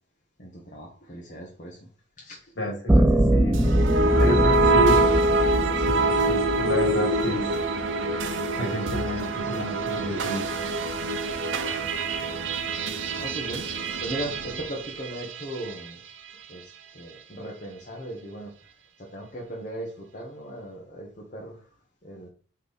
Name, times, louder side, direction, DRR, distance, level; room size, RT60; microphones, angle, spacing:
voice 1, 0.4-1.9 2.2-2.5 12.3-16.0 16.5-18.7 19.0-21.7 22.0-22.3, right 1 dB, 40° left, -3 dB, 1.3 m, -38 dB
voice 2, 2.6-3.7 4.2-5.0 5.8-7.5 8.6-10.4, equal, 65° left, 1 dB, 2.4 m, -30 dB
sound 1, 2.9-7.2, right 1 dB, 10° right, 0.4 m, -22 dB
sound 2, 3.5-15.9, right 2 dB, 90° right, 0.8 m, -25 dB
4.5 x 4.1 x 5.2 m, 0.39 s
head